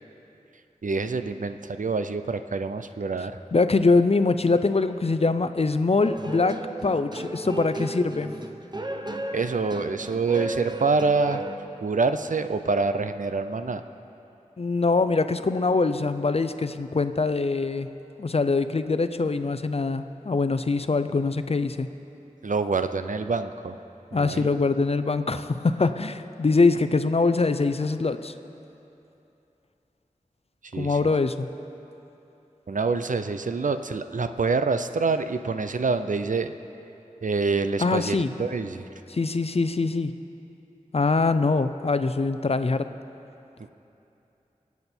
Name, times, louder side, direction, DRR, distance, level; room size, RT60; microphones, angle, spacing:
voice 1, 0.8-3.4 9.3-11.4 11.8-13.8 22.4-23.8 24.1-24.5 30.7-31.0 32.7-36.5 37.2-38.9, right 4 dB, 75° right, 9 dB, 0.6 m, -26 dB
voice 2, 3.5-8.3 14.6-17.9 18.2-21.9 24.1-28.3 30.7-31.5 37.8-38.3 39.1-40.1 40.9-42.9, left 3 dB, 50° left, 11 dB, 0.5 m, -23 dB
sound 1, 6.0-11.6, right 1 dB, 30° right, 0.8 m, -34 dB
24.0 x 8.3 x 4.4 m, 2.9 s
wide cardioid pair, 60°, 14 cm